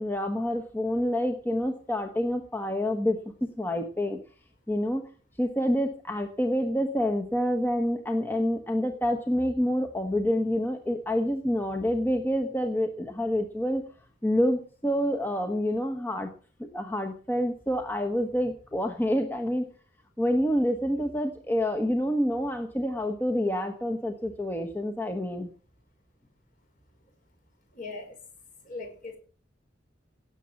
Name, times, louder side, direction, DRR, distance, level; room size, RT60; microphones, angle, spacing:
voice 1, 0.0-3.2 3.6-4.2 4.7-5.1 5.4-13.8 14.2-16.3 16.6-19.7 20.2-25.5, equal, 10° left, 4 dB, 1.1 m, -27 dB
voice 2, 27.7-28.2 28.6-29.2, left 3 dB, 45° left, 4 dB, 4.8 m, -39 dB
17.0 x 7.1 x 7.2 m, 0.41 s
head